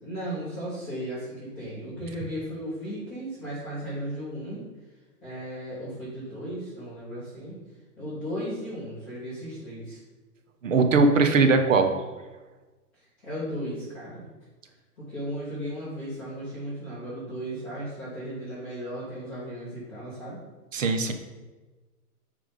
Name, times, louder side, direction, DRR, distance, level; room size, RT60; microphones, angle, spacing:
voice 1, 0.0-4.6 5.2-7.6 8.0-10.0 13.2-14.2 15.0-20.4, equal, 5° left, -17 dB, 0.7 m, -35 dB
voice 2, 10.6-11.9 20.7-21.1, right 3 dB, 55° right, 6 dB, 0.9 m, -20 dB
9.3 x 3.4 x 5.1 m, 1.2 s
hypercardioid pair, 175°, 47 cm